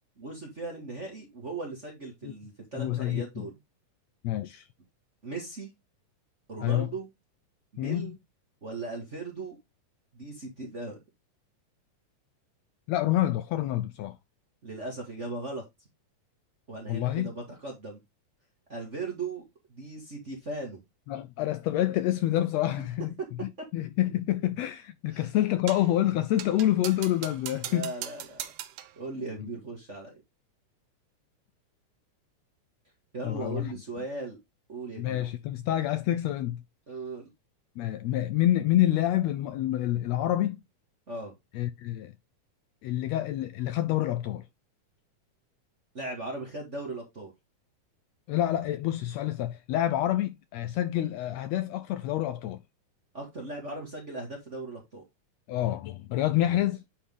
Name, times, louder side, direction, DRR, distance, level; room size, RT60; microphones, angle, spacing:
voice 1, 0.2-3.5 5.2-5.7 6.5-7.1 7.7-8.2 8.6-9.6 10.1-11.0 14.6-15.6 16.7-18.0 18.7-19.4 19.7-20.8 25.1-25.3 27.6-28.5 29.0-30.2 33.1-34.4 34.7-35.2 36.9-37.3 41.1-41.3 45.9-47.3 53.1-55.0 56.4-56.7, right 2 dB, 30° right, 1.6 m, -38 dB
voice 2, 2.8-3.4 4.2-4.7 6.6-6.9 7.8-8.2 12.9-14.2 16.9-17.3 21.1-23.1 23.4-27.9 29.4-29.5 33.2-33.7 35.0-36.6 37.8-40.6 41.5-42.1 42.8-44.4 48.3-52.6 55.5-56.8, left 13 dB, 80° left, 1.5 m, -27 dB
sound 1, 25.7-26.0 26.4-29.0, right 12 dB, 85° right, 2.3 m, -40 dB
9.8 x 4.4 x 3.6 m
omnidirectional pair, 3.5 m